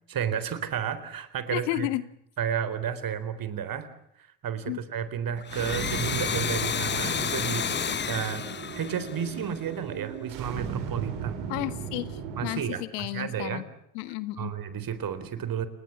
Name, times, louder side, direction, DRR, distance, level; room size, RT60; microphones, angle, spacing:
voice 1, 0.1-1.9 2.4-3.9 4.2-7.7 8.1-8.4 8.7-11.4 12.4-13.6 14.4-15.7, right 8 dB, 45° right, 13 dB, 4.0 m, -32 dB
voice 2, 1.5-2.0 4.7-4.8 11.5-13.6 13.9-14.5, left 17 dB, 70° left, 14 dB, 1.8 m, -32 dB
Domestic sounds home sounds, 5.4-9.9, left 7 dB, 20° left, 0.9 m, -31 dB
sound 1, 5.5-12.5, right 7 dB, 70° right, 4.5 m, -37 dB
29.5 x 20.5 x 7.2 m, 0.74 s
hypercardioid pair, 75°, 49 cm